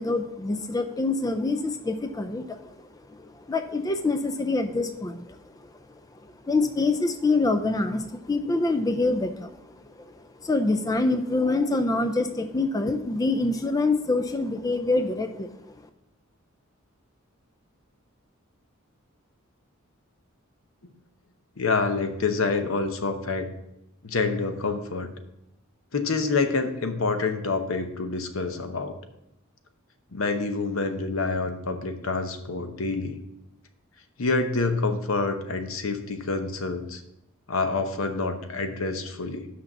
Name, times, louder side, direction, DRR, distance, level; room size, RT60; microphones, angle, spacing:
voice 1, 0.0-2.6 3.5-5.4 6.4-9.5 10.4-15.5, left 3 dB, 15° left, 8 dB, 0.4 m, -25 dB
voice 2, 21.6-23.5 24.0-25.1 25.9-29.0 30.1-33.2 34.2-37.0 37.5-39.5, left 3 dB, 75° left, 7 dB, 0.9 m, -27 dB
6.1 x 5.8 x 6.6 m, 0.87 s
head